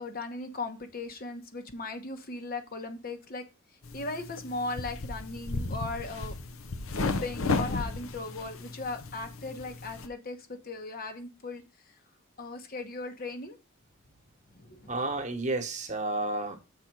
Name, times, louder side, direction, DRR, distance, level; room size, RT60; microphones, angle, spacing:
voice 1, 0.0-3.4 3.9-6.3 7.0-11.6 12.4-13.6 14.5-14.9, left 3 dB, 45° left, 1.1 m, -38 dB
sound 1, 3.8-10.1, left 3 dB, 80° left, 0.8 m, -34 dB
voice 2, 14.9-16.6, right 2 dB, 35° right, 1.2 m, -31 dB
6.8 x 4.2 x 6.1 m
head